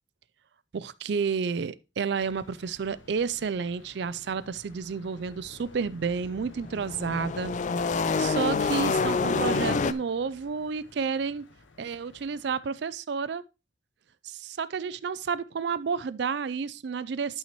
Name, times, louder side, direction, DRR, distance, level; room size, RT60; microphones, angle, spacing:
voice 1, 0.7-7.5 7.8-11.5 11.8-13.4 14.2-17.4, right 5 dB, 60° right, 0.4 m, -31 dB
sound 1, 2.2-12.6, left 2 dB, 75° left, 1.1 m, -55 dB
sound 2, 5.9-9.9, left 4 dB, 40° left, 0.4 m, -27 dB
12.0 x 5.6 x 2.9 m
head